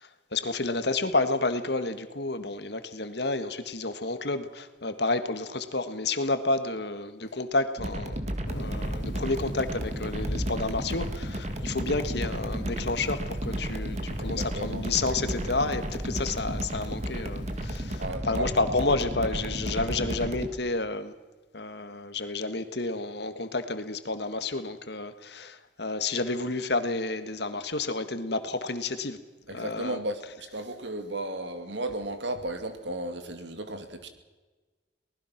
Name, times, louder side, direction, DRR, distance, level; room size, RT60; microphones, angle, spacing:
voice 1, 0.0-8.2 8.5-21.1 21.5-29.2 29.5-30.0, left 3 dB, 60° left, 10 dB, 1.7 m, -30 dB
sound 1, 7.8-20.5, equal, 35° right, 2.1 m, -33 dB
Thunder / Rain, 8.4-18.1, equal, 80° left, 3.3 m, -43 dB
voice 2, 14.2-14.8 15.1-15.6 18.0-18.5 29.5-34.1, right 1 dB, 75° right, 7 dB, 2.5 m, -35 dB
24.0 x 19.5 x 6.0 m, 1.3 s
head